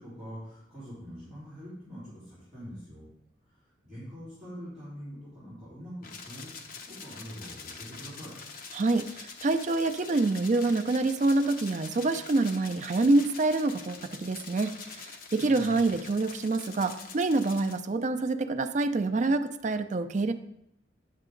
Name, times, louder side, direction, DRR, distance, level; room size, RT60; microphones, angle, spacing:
voice 1, 0.0-3.1 3.5-8.3 15.4-15.9, equal, 5° right, -14 dB, 3.7 m, -44 dB
sound 1, 6.0-17.8, left 5 dB, 50° left, 0.8 m, -45 dB
voice 2, 8.7-20.3, right 2 dB, 40° right, 9 dB, 0.4 m, -26 dB
9.0 x 6.6 x 3.8 m, 0.80 s
head